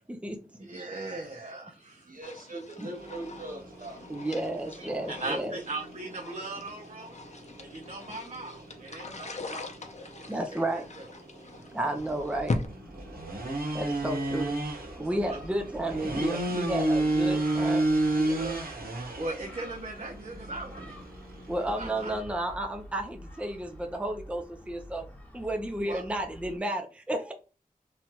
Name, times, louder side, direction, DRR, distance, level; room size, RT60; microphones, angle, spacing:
voice 1, 0.1-0.6 2.8-2.9 4.1-5.6 10.3-10.9 11.6-12.6 13.7-14.5 15.0-18.4 21.5-25.1 25.3-27.3, right 1 dB, 10° right, 4 dB, 0.5 m, -32 dB
voice 2, 0.6-2.1 4.8-7.2 7.6-9.7 10.0-10.6 15.3-15.4 18.3-18.5 19.1-21.0 21.8-22.1 25.9-26.0, right 2 dB, 50° right, 0 dB, 0.7 m, -39 dB
voice 3, 1.9-4.1 7.3-7.8 10.1-10.3 11.3-11.8, right 2 dB, 65° right, 0 dB, 1.2 m, -44 dB
sound 1, 2.2-12.6, left 3 dB, 50° left, 0.6 m, -40 dB
sound 2, 3.0-22.2, right 2 dB, 80° right, 0.9 m, -33 dB
Gull seagull, 12.0-26.6, left 1 dB, 10° left, 1.1 m, -48 dB
3.0 x 2.3 x 2.9 m, 0.33 s
wide cardioid pair, 65°, 15 cm